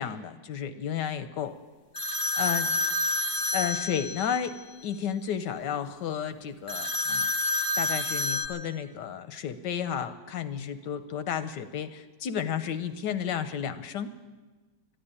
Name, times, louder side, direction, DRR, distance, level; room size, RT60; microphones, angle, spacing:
voice 1, 0.0-1.5 2.4-3.0 3.5-4.6 4.8-7.3 7.8-14.1, left 8 dB, 70° left, 11 dB, 1.1 m, -32 dB
sound 1, 1.9-4.5 6.7-8.5, left 2 dB, 35° left, 0.8 m, -28 dB
12.0 x 11.5 x 9.8 m, 1.3 s
omnidirectional pair, 2.3 m